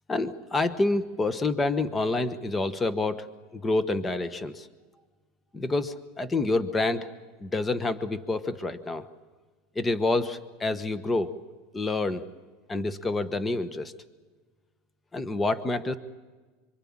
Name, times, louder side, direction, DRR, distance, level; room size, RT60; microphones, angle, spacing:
voice 1, 0.1-3.3 3.5-4.7 5.5-7.1 7.4-9.0 9.7-11.3 11.7-12.3 12.7-13.9 15.1-16.0, left 2 dB, 15° left, 11 dB, 1.2 m, -27 dB
26.0 x 25.5 x 8.8 m, 1.3 s
supercardioid pair, 125°, 0 cm